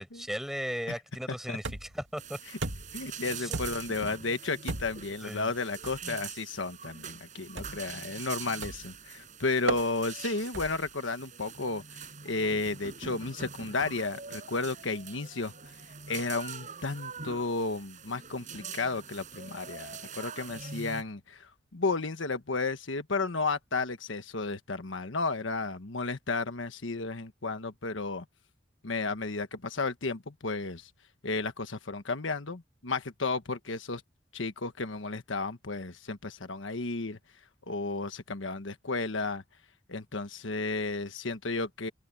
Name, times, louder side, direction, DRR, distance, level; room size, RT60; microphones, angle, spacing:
voice 1, 0.0-2.4 3.4-3.6 5.2-5.5 6.0-6.2, equal, ahead, 5.1 m, -37 dB
sound 1, 1.6-2.1 2.6-3.1 3.5-4.0 4.7-5.1 5.8-6.0 7.6-7.9 8.6-9.0 9.7-9.9 10.5-10.9, right 2 dB, 75° right, 2.4 m, -36 dB
sound 2, 2.2-21.0, right 6 dB, 40° right, 7.6 m, -44 dB
voice 2, 2.9-15.5 16.1-28.2 28.8-30.9 31.2-34.0 34.3-37.2 37.7-39.4 39.9-41.9, left 3 dB, 90° left, 1.4 m, -33 dB
open air
head